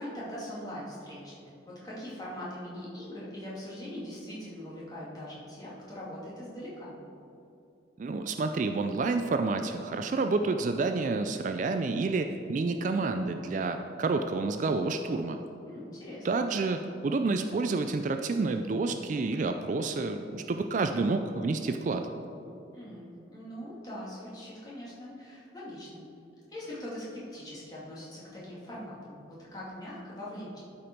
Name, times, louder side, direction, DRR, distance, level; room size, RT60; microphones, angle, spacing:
voice 1, 0.0-7.0 15.6-16.2 22.7-26.0 26.5-30.6, left 1 dB, 20° left, -7 dB, 2.2 m, -42 dB
voice 2, 8.0-15.4 16.2-22.1, right 3 dB, 40° right, 7 dB, 0.3 m, -29 dB
12.5 x 5.1 x 4.5 m, 2.7 s
head